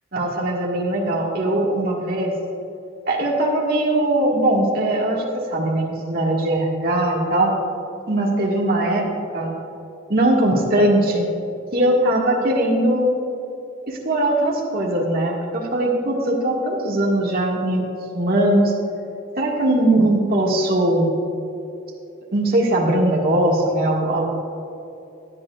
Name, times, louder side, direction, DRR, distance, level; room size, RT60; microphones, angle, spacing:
voice 1, 0.1-2.3 3.1-7.5 8.1-9.1 9.3-9.5 10.1-11.3 11.7-13.1 13.9-17.8 18.1-18.7 19.4-21.1 22.3-24.3, right 1 dB, 45° right, -3 dB, 1.9 m, -20 dB
18.0 x 11.0 x 2.5 m, 2.8 s
head